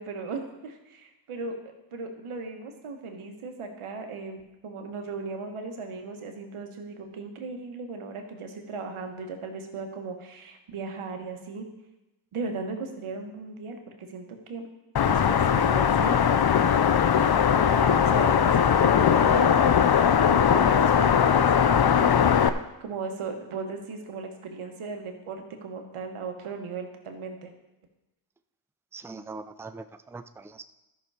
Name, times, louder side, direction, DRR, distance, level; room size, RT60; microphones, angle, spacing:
voice 1, 0.0-1.6 1.9-11.7 12.3-14.7 15.1-16.2 17.2-19.9 20.3-27.5, right 4 dB, 90° right, 4 dB, 1.4 m, -37 dB
sound 1, 15.0-22.5, left 8 dB, 50° left, 0.7 m, -20 dB
voice 2, 28.9-30.6, right 3 dB, 5° right, 10 dB, 0.5 m, -41 dB
12.5 x 6.1 x 4.8 m, 0.97 s
cardioid pair, 50°, 49 cm